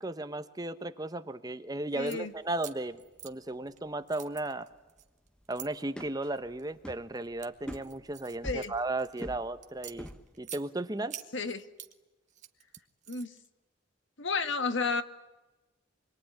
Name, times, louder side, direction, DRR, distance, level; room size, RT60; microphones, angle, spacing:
voice 1, 0.0-4.7 5.5-10.1 10.4-11.2, right 2 dB, 20° right, 11 dB, 1.0 m, -35 dB
sound 1, 1.9-2.2 2.6-3.8 4.1-5.7 6.3-6.7 7.1-9.2 9.6-10.6 11.1-11.9 12.3-13.5, right 11 dB, 35° right, 1.6 m, -47 dB
voice 2, 2.0-2.3 8.4-8.7 11.3-11.6 13.1-13.3 14.2-15.0, left 4 dB, 65° left, 10 dB, 1.8 m, -31 dB
sound 2, 2.0-4.0 4.3-4.4 4.7-10.4, equal, 5° left, 1.3 m, -45 dB
26.0 x 22.5 x 9.9 m, 1.1 s
head